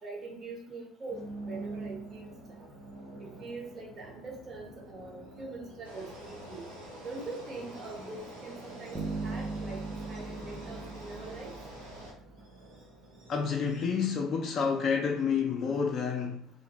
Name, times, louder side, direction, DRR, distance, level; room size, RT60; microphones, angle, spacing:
voice 1, 0.0-2.7 3.2-6.7 7.0-11.5, right 3 dB, 40° right, 0.9 m, -43 dB
sound 1, 1.1-13.8, right 2 dB, 70° right, 0.9 m, -48 dB
sound 2, 5.8-12.1, right 1 dB, 85° right, 0.5 m, -47 dB
Bass guitar, 8.9-12.0, right 3 dB, 10° right, 0.6 m, -38 dB
voice 2, 13.3-16.5, left 6 dB, 45° left, 0.3 m, -29 dB
2.5 x 2.0 x 2.9 m
hypercardioid pair, 60°, 0 cm